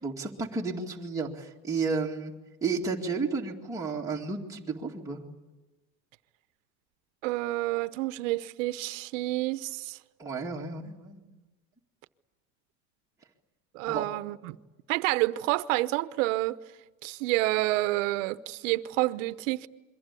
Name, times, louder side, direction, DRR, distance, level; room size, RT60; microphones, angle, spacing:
voice 1, 0.0-2.3 2.6-5.2 10.2-11.3 13.9-14.1, right 4 dB, 10° right, 2.2 m, -32 dB
voice 2, 7.2-10.0 13.7-14.6 14.9-16.6 17.0-19.7, right 18 dB, 85° right, 1.0 m, -29 dB
28.5 x 23.0 x 8.4 m
cardioid pair, 150°, 37 cm